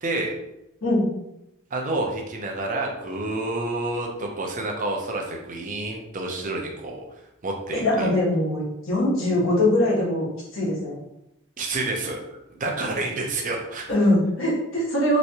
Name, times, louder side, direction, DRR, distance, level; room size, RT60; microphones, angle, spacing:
voice 1, 0.0-0.3 1.7-7.0 7.4-8.1 11.6-12.2 12.6-13.8, right 2 dB, 40° right, 1 dB, 0.6 m, -29 dB
voice 2, 7.7-10.3 10.5-10.9 13.9-15.2, left 1 dB, 70° left, -5 dB, 1.3 m, -22 dB
3.3 x 3.0 x 2.8 m, 0.86 s
head